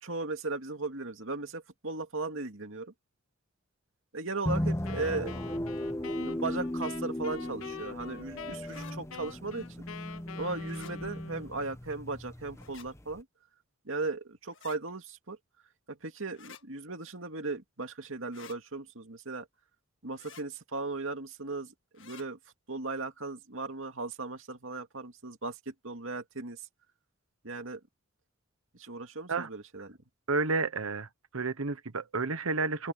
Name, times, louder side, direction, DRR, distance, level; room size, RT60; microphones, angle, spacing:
voice 1, 0.0-2.9 4.1-5.7 6.2-9.7 10.3-13.3 13.8-15.4 15.9-19.5 20.0-22.4 22.7-26.7 27.4-27.8 28.7-30.0, right 3 dB, 65° right, 2.6 m, -37 dB
sound 1, 4.5-13.2, left 1 dB, 15° left, 1.1 m, -36 dB
Wind instrument woodwind instrument, 4.8-11.7, left 6 dB, 80° left, 0.8 m, -46 dB
sound 2, 8.6-8.9 10.6-10.9 12.6-12.9 14.5-14.8 16.3-16.6 18.3-18.6 20.1-20.4 21.9-22.2, left 8 dB, 65° left, 1.7 m, -51 dB
voice 2, 30.3-32.9, right 3 dB, 90° right, 1.2 m, -31 dB
open air
head